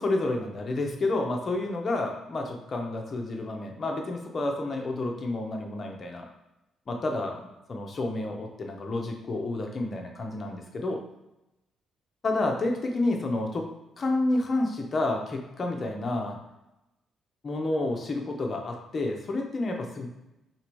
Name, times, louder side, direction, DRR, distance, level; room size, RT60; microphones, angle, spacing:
voice 1, 0.0-6.3 6.9-7.4 7.7-11.0 12.2-13.7 14.0-16.4 17.4-20.1, left 2 dB, 35° left, 2 dB, 0.7 m, -29 dB
3.4 x 2.8 x 4.5 m, 0.92 s
cardioid pair, 135°, 0 cm